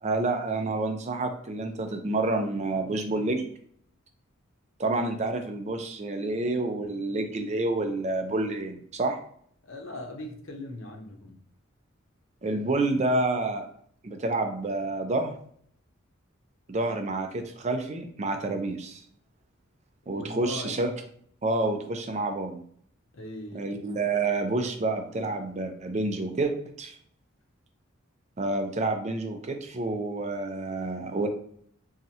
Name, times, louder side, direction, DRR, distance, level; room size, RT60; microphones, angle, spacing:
voice 1, 0.0-3.5 4.8-9.2 12.4-13.7 14.0-15.3 16.7-19.0 20.1-20.9 21.4-22.6 23.5-27.0 28.4-31.3, right 2 dB, 30° right, 5 dB, 0.4 m, -28 dB
voice 2, 9.6-11.4 20.1-21.0 23.1-23.8, left 1 dB, 65° left, 2 dB, 0.8 m, -40 dB
4.1 x 2.4 x 2.8 m, 0.62 s
head